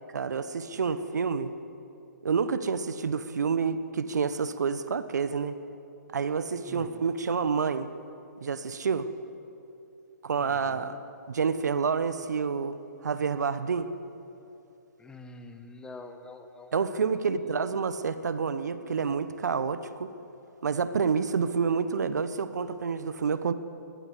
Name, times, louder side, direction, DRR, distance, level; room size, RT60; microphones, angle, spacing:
voice 1, 0.1-1.5 2.2-5.6 6.1-7.9 8.4-9.1 10.2-11.0 11.3-13.9 16.7-20.1 20.6-23.5, right 5 dB, 65° right, 13 dB, 1.1 m, -28 dB
voice 2, 6.7-7.0 10.4-11.0 15.0-16.8 17.2-17.3, left 2 dB, 10° left, 7 dB, 1.6 m, -46 dB
22.0 x 19.5 x 8.3 m, 2.8 s
figure-of-eight pair, 125°, 10 cm